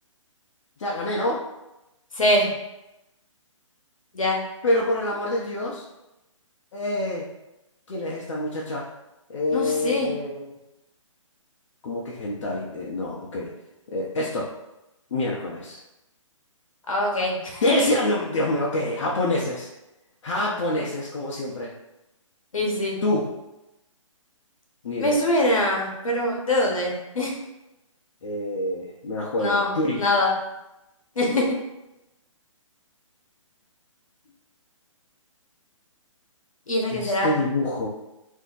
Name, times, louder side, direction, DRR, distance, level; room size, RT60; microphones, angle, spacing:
voice 1, 0.8-1.4 4.6-5.8 6.7-7.2 7.9-8.8 9.3-10.5 11.8-13.5 13.9-14.5 15.1-15.8 17.6-19.7 20.2-21.7 23.0-23.3 24.8-25.2 28.2-30.0 36.9-37.9, left 1 dB, 65° left, -4 dB, 0.6 m, -26 dB
voice 2, 2.2-2.5 4.1-4.4 9.5-10.1 16.9-17.9 22.5-23.0 25.0-27.3 29.4-29.7 30.0-30.3 31.2-31.5 36.7-37.3, left 1 dB, 85° left, -1 dB, 0.9 m, -23 dB
2.6 x 2.1 x 3.8 m, 0.94 s
hypercardioid pair, 140°, 17 cm